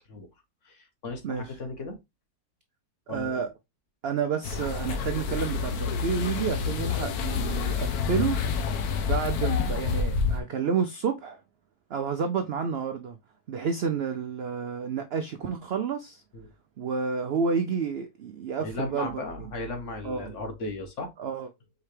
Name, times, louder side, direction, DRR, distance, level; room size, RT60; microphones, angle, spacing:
voice 1, 0.6-2.0 3.1-3.5 16.3-16.5 18.6-21.1, left 2 dB, 55° left, 1.4 m, -36 dB
voice 2, 3.1-3.5 4.0-8.4 9.1-11.4 11.9-13.2 13.5-16.2 16.8-19.2 20.0-20.3 21.2-21.5, right 6 dB, 70° right, 0.5 m, -30 dB
sound 1, 4.4-10.4, left 5 dB, 80° left, 1.2 m, -28 dB
4.8 x 3.3 x 3.2 m
omnidirectional pair, 1.6 m